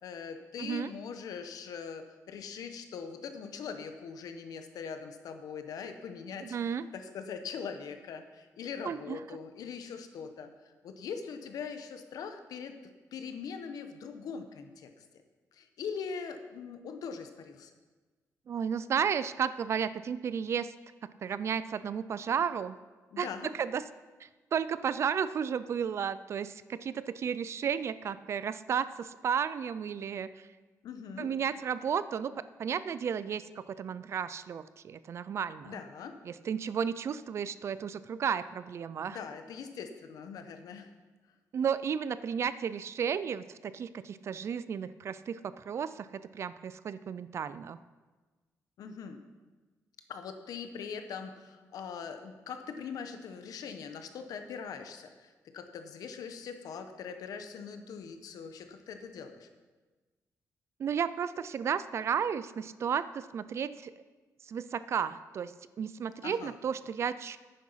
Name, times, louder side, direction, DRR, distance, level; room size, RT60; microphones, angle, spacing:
voice 1, 0.0-10.5 10.8-12.7 13.1-15.0 15.5-17.7 23.1-23.5 30.8-31.3 35.6-36.1 39.1-40.9 48.8-49.2 50.1-59.5 66.2-66.5, left 6 dB, 90° left, 7 dB, 1.1 m, -42 dB
voice 2, 0.6-0.9 6.4-6.9 8.8-9.2 18.5-20.7 21.2-22.8 23.2-23.8 24.2-30.3 31.2-32.3 32.6-35.8 36.2-39.2 41.5-47.8 60.8-63.9 64.5-67.4, right 7 dB, 45° right, 15 dB, 0.4 m, -33 dB
10.0 x 9.3 x 5.7 m, 1.3 s
wide cardioid pair, 170°, 6 cm